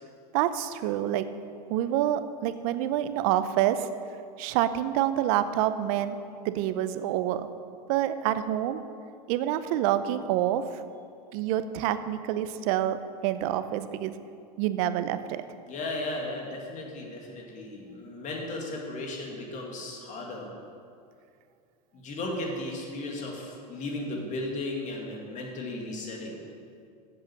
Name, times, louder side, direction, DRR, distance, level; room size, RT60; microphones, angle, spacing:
voice 1, 0.3-1.3 1.7-3.9 4.4-6.2 6.4-7.5 7.9-8.8 9.3-10.8 11.3-13.0 13.2-14.1 14.6-15.4, right 12 dB, 60° right, 12 dB, 0.6 m, -27 dB
voice 2, 15.7-20.5 21.9-26.4, left 2 dB, 35° left, 0 dB, 2.3 m, -35 dB
7.8 x 7.6 x 7.4 m, 2.4 s
supercardioid pair, 115°, 20 cm